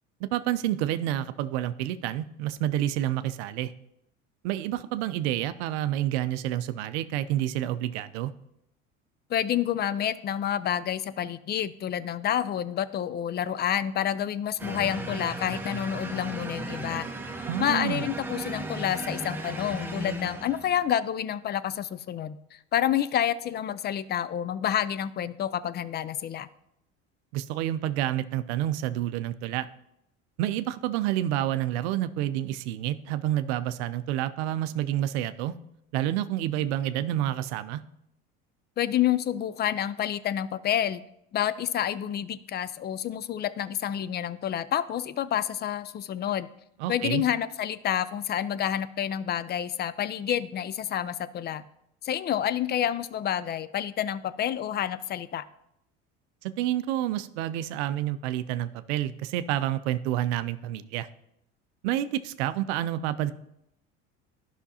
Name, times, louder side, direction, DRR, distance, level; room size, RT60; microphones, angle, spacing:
voice 1, 0.2-3.7 4.4-8.3 17.5-18.0 27.3-29.7 30.4-35.5 35.9-37.8 46.8-47.2 56.4-61.1 61.8-63.3, right 12 dB, 80° right, 13 dB, 0.5 m, -29 dB
voice 2, 9.3-17.1 17.6-26.5 38.8-41.0 41.3-46.5 46.9-51.6 52.0-55.5, left 10 dB, 30° left, 17 dB, 0.4 m, -29 dB
sound 1, 14.6-20.9, right 1 dB, 5° right, 1.0 m, -36 dB
11.5 x 5.8 x 2.8 m, 0.78 s
supercardioid pair, 85°, 32 cm